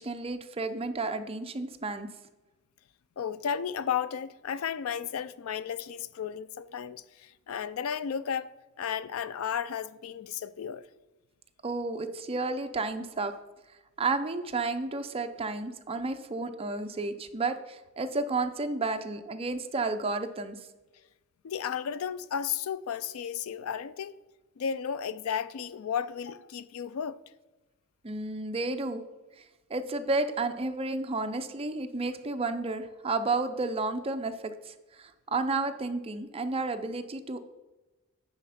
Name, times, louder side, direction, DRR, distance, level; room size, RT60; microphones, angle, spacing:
voice 1, 0.0-2.1 11.6-13.3 14.0-20.6 28.0-29.0 29.4-29.5 29.7-37.4, right 3 dB, 25° right, 0.6 m, -32 dB
voice 2, 3.2-8.5 8.8-10.9 21.4-24.2 24.6-27.2, left 8 dB, 75° left, 0.4 m, -33 dB
9.6 x 4.2 x 5.8 m
head